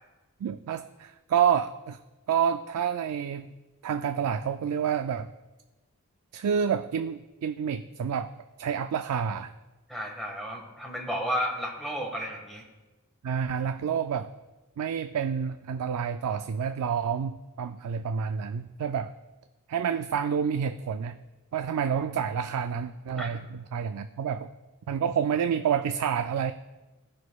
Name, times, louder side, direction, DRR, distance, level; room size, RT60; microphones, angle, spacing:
voice 1, 0.4-2.0 2.3-3.5 3.8-5.3 6.3-8.3 8.6-9.5 13.2-14.3 14.8-19.1 19.7-21.2 21.5-24.5 24.9-26.5, right 7 dB, 85° right, 9 dB, 0.3 m, -28 dB
voice 2, 9.9-12.6 23.2-23.3, equal, ahead, -1 dB, 1.6 m, -32 dB
16.5 x 6.3 x 2.3 m, 1.1 s
head